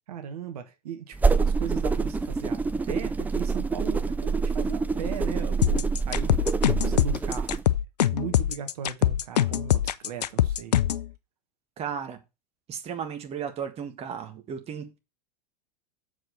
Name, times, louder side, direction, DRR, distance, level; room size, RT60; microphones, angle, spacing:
voice 1, 0.1-2.6 2.9-6.3 6.7-7.6 8.1-10.8, right 8 dB, 65° right, 1.5 m, -37 dB
sound 1, 1.1-7.6, right 4 dB, 10° right, 0.5 m, -26 dB
sound 2, 5.6-11.1, left 11 dB, 75° left, 0.6 m, -23 dB
voice 2, 11.8-12.2 12.7-15.0, right 7 dB, 30° right, 1.7 m, -35 dB
7.3 x 5.2 x 6.8 m
hypercardioid pair, 95°, 21 cm